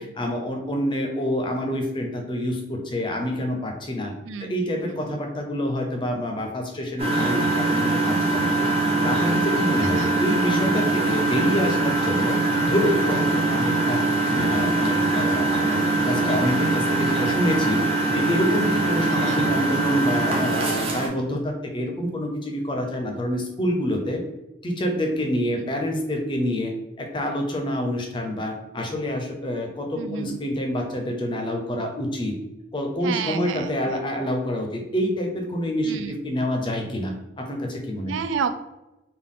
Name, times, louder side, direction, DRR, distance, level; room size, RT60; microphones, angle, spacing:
voice 1, 0.0-4.1 4.4-8.5 9.0-14.0 14.3-17.8 18.1-24.2 24.6-26.7 27.0-32.3 32.7-38.1, equal, 25° left, 2 dB, 0.5 m, -27 dB
voice 2, 4.2-5.1 9.8-10.2 19.1-19.4 25.5-25.7 30.0-30.4 33.0-33.9 35.8-36.2 38.1-38.5, right 6 dB, 85° right, 9 dB, 0.3 m, -31 dB
Engine, 7.0-21.1, right 2 dB, 30° right, 0.7 m, -22 dB
3.6 x 2.3 x 3.7 m, 0.97 s
head